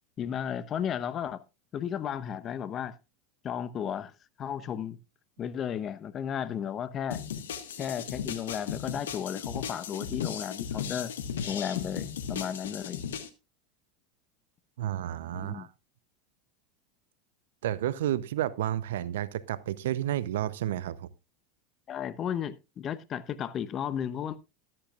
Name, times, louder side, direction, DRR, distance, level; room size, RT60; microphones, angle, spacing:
voice 1, 0.2-1.4 1.7-3.0 3.4-4.1 4.4-5.0 5.4-7.2 7.8-11.1 11.5-13.1 15.3-15.7 21.9-24.4, left 9 dB, 35° left, 1.0 m, -34 dB
sound 1, 7.1-13.3, left 8 dB, 75° left, 1.5 m, -36 dB
voice 2, 14.8-15.7 17.6-21.1, right 12 dB, 70° right, 0.7 m, -31 dB
13.5 x 13.0 x 2.5 m
hypercardioid pair, 85°, 0 cm